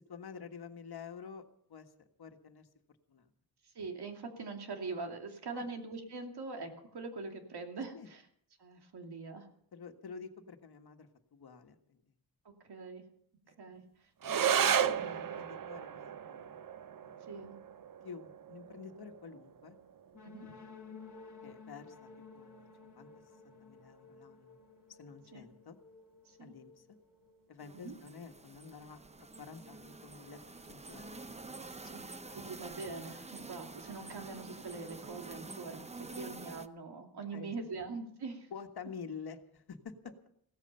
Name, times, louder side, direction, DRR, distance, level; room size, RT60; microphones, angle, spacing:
voice 1, 0.1-1.4 1.7-2.7 3.1-3.3 5.5-5.6 7.9-8.1 9.7-12.1 13.7-13.8 14.4-16.5 17.0-17.3 18.0-19.8 21.4-22.0 22.3-22.7 22.9-23.1 23.4-24.6 24.9-25.8 26.4-26.9 27.5-32.0 32.3-32.4 37.3-37.5 38.5-40.3, left 6 dB, 70° left, 6 dB, 1.6 m, -49 dB
voice 2, 3.6-8.2 8.6-9.5 12.4-13.0 13.6-13.8 14.5-14.7 17.3-17.6 20.2-20.5 25.3-25.5 26.3-26.5 27.7-28.0 31.7-32.0 32.3-35.8 36.2-38.5, right 4 dB, 80° right, 4 dB, 2.6 m, -43 dB
sound 1, 14.2-23.2, right 8 dB, 55° right, 0.7 m, -36 dB
sound 2, 20.1-27.8, left 5 dB, 45° left, 1.3 m, -55 dB
sound 3, 27.6-36.7, right 3 dB, 15° right, 0.6 m, -48 dB
16.5 x 14.0 x 5.7 m, 0.66 s
wide cardioid pair, 150°, 39 cm